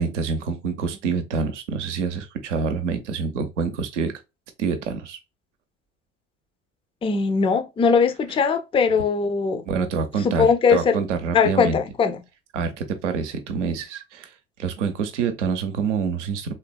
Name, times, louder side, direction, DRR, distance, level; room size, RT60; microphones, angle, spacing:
voice 1, 0.0-4.1 4.6-5.2 9.7-11.8 12.5-14.3 14.6-16.5, right 5 dB, 80° right, 0.7 m, -26 dB
voice 2, 7.0-9.6 10.2-10.9 11.3-12.2, left 5 dB, 15° left, 0.4 m, -20 dB
3.2 x 2.4 x 2.3 m
hypercardioid pair, 60°, 35 cm